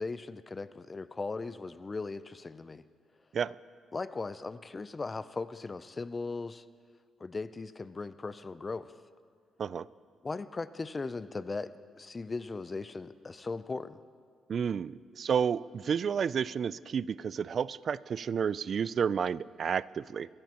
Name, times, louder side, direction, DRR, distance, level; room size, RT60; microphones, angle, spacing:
voice 1, 0.0-2.8 3.9-6.6 7.2-8.9 10.2-14.0, left 3 dB, 30° left, 15 dB, 0.4 m, -38 dB
voice 2, 14.5-20.3, right 7 dB, 55° right, 20 dB, 0.3 m, -31 dB
22.5 x 16.0 x 2.9 m, 2.1 s
cardioid pair, 90°, 0 cm